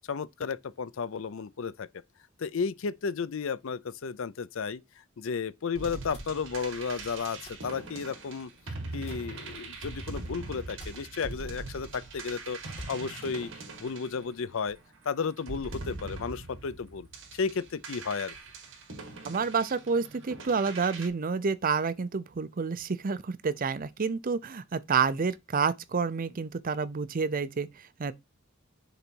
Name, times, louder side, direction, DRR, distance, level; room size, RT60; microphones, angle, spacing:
voice 1, 0.1-1.9 2.4-8.5 8.9-12.6 12.9-13.5 13.8-14.8 15.0-18.3, left 5 dB, 65° left, 0.5 m, -33 dB
sound 1, 5.7-14.8 15.4-21.1, right 3 dB, 60° right, 1.8 m, -42 dB
sound 2, 7.4-11.5 11.9-12.0 12.2-12.3 12.7-14.9, equal, 30° left, 2.6 m, -51 dB
voice 2, 19.3-28.1, right 5 dB, 40° right, 0.5 m, -29 dB
6.7 x 3.9 x 4.5 m
head